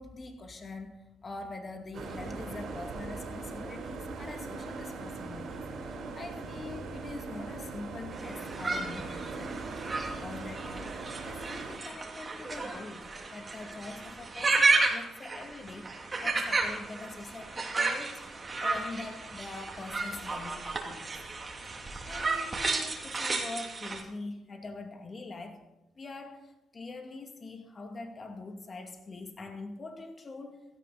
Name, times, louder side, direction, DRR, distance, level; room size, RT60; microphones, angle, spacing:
voice 1, 0.0-9.6 10.1-11.0 11.2-15.9 16.2-18.2 18.6-21.2 22.1-25.6 26.0-26.4 26.7-30.6, left 3 dB, 35° left, 4 dB, 2.3 m, -43 dB
sound 1, 1.9-11.8, right 3 dB, 65° right, 4.1 m, -40 dB
sound 2, 8.1-24.0, right 3 dB, 30° right, 2.7 m, -32 dB
16.5 x 13.5 x 4.1 m, 0.93 s
cardioid pair, 90°, 0 cm